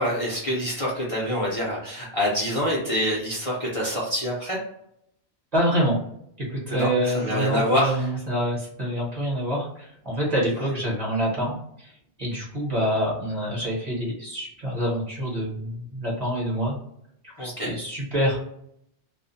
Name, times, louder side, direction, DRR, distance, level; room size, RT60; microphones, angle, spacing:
voice 1, 0.0-4.6 6.7-8.1 10.6-10.7 17.4-17.7, equal, 35° left, -5 dB, 0.7 m, -26 dB
voice 2, 5.5-6.0 6.4-11.9 12.2-16.8 17.2-18.6, equal, 40° right, -3 dB, 1.1 m, -26 dB
2.4 x 2.2 x 2.6 m, 0.72 s
omnidirectional pair, 1.2 m